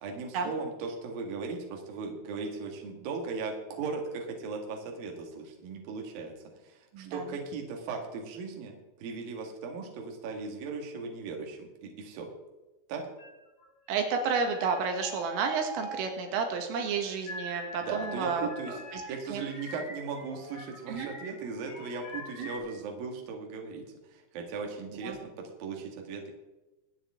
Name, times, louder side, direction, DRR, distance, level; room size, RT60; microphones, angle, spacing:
voice 1, 0.0-6.3 6.6-12.3 12.9-13.0 17.8-18.8 19.1-25.3 25.6-26.3, right 4 dB, 55° right, 2 dB, 3.0 m, -38 dB
voice 2, 6.9-7.3 13.9-19.0 19.3-19.4 20.9-21.1 22.4-22.5 25.0-25.2, right 5 dB, 75° right, 4 dB, 4.0 m, -31 dB
sound 1, 13.2-14.1 14.4-16.4 16.7-22.6, equal, 40° left, 3.5 m, -44 dB
24.5 x 8.9 x 3.7 m, 1.0 s
omnidirectional pair, 6.0 m